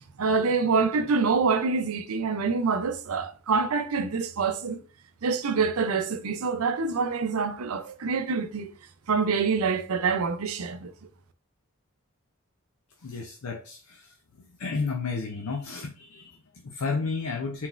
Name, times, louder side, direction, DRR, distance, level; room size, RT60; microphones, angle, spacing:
voice 1, 0.2-4.8 5.2-8.7 9.1-10.9, right 4 dB, 75° right, 0.5 m, -26 dB
voice 2, 13.0-14.1 14.6-17.7, left 4 dB, 80° left, 0.6 m, -32 dB
4.2 x 3.9 x 2.5 m
head